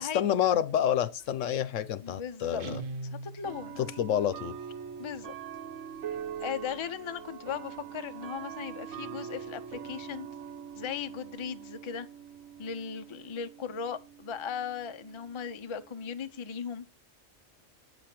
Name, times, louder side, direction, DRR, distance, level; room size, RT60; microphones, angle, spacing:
voice 1, 0.0-2.8 3.8-4.5, left 10 dB, 75° left, 1.0 m, -28 dB
sound 1, 1.2-1.3 2.4-2.5 3.4-16.7, right 8 dB, 70° right, 1.2 m, -43 dB
voice 2, 2.0-2.6 3.0-3.8 5.0-5.4 6.4-10.3 10.8-12.1 12.6-16.9, left 7 dB, 35° left, 0.5 m, -37 dB
Guitar, 2.6-3.9, right 2 dB, 50° right, 0.8 m, -40 dB
8.6 x 5.1 x 5.9 m
omnidirectional pair, 1.3 m